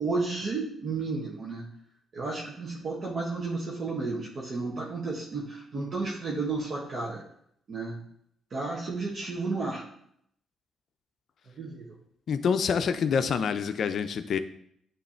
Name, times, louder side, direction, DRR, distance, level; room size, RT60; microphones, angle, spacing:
voice 1, 0.0-1.7 2.1-7.2 7.7-8.0 8.5-9.8 11.6-11.9, right 3 dB, 50° right, -4 dB, 1.4 m, -32 dB
voice 2, 12.3-14.4, left 6 dB, 60° left, 10 dB, 0.6 m, -26 dB
9.8 x 3.3 x 4.4 m, 0.70 s
cardioid pair, 90°, 0 cm